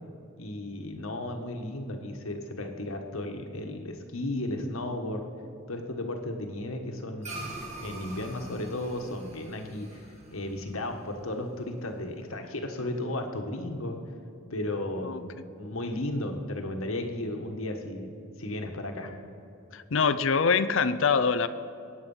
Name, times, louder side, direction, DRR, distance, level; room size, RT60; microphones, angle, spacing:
voice 1, 0.4-5.3 5.7-10.0 10.3-14.0 14.5-15.3 15.6-19.1, left 1 dB, 75° left, 4 dB, 1.5 m, -34 dB
sound 1, 7.2-11.9, right 2 dB, 30° right, 2.3 m, -44 dB
voice 2, 19.7-21.5, left 5 dB, 60° left, 12 dB, 0.5 m, -24 dB
21.5 x 9.5 x 5.6 m, 2.7 s
head